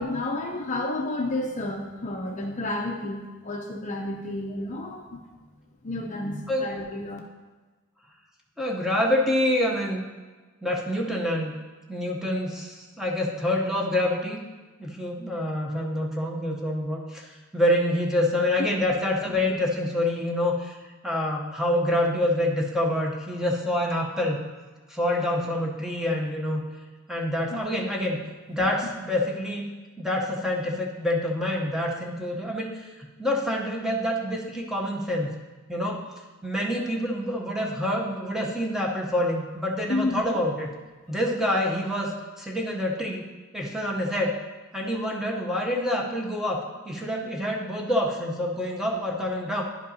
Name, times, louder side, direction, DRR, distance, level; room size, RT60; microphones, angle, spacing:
voice 1, 0.0-5.2 5.8-7.2 27.5-27.6 28.6-28.7 39.9-40.2, left 2 dB, 35° left, 1 dB, 0.5 m, -31 dB
voice 2, 8.6-10.1 10.6-11.5 11.9-14.5 14.8-24.4 24.9-26.6 27.1-28.2 28.5-29.7 30.0-35.3 35.7-36.0 36.4-40.7 41.1-43.2 43.5-44.4 44.7-49.6, left 1 dB, ahead, -1 dB, 0.7 m, -27 dB
11.0 x 5.2 x 2.7 m, 1.3 s
head